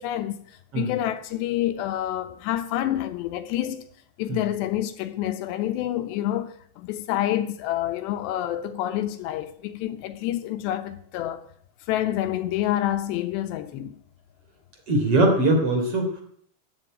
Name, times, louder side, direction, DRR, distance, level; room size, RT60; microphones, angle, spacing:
voice 1, 0.0-3.9 4.2-11.4 11.9-14.0, left 13 dB, 80° left, 3.0 m, -28 dB
voice 2, 14.9-16.2, right 2 dB, 35° right, 3.9 m, -21 dB
14.0 x 10.0 x 8.9 m
omnidirectional pair, 5.0 m